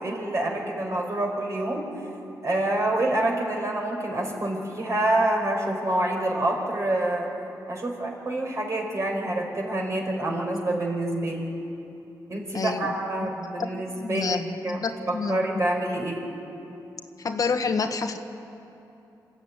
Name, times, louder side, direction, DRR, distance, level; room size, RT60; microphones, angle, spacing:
voice 1, 0.0-1.8 2.4-7.3 7.7-11.5 12.3-14.4 14.6-14.8 15.1-16.2, right 1 dB, 40° right, 1 dB, 4.6 m, -27 dB
voice 2, 12.5-12.9 13.2-13.3 13.6-15.4 17.2-18.2, left 5 dB, 55° left, 7 dB, 1.2 m, -28 dB
26.0 x 13.5 x 9.5 m, 2.9 s
cardioid pair, 90°, 7 cm